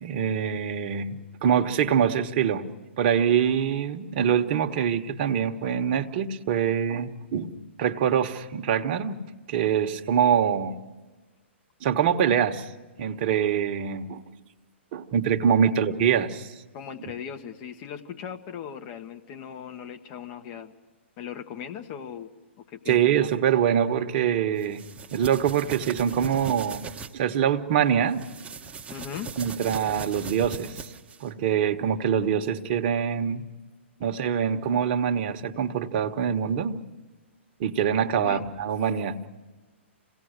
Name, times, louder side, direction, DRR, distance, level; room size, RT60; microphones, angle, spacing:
voice 1, 0.0-2.7 3.0-9.2 9.5-10.7 11.8-12.7 13.0-14.2 14.9-16.5 22.9-24.9 25.1-26.8 27.1-28.2 29.4-30.8 31.2-33.5 34.0-36.8 37.6-39.2, right 8 dB, 45° right, 6 dB, 1.3 m, -24 dB
voice 2, 16.7-20.7 21.2-22.3 22.7-23.3 28.9-29.3 38.2-38.4, left 8 dB, 35° left, 7 dB, 1.4 m, -38 dB
sound 1, 24.6-27.1 28.1-31.3, right 6 dB, 15° right, 1.1 m, -39 dB
27.5 x 17.5 x 6.6 m, 1.3 s
figure-of-eight pair, 120°, 7 cm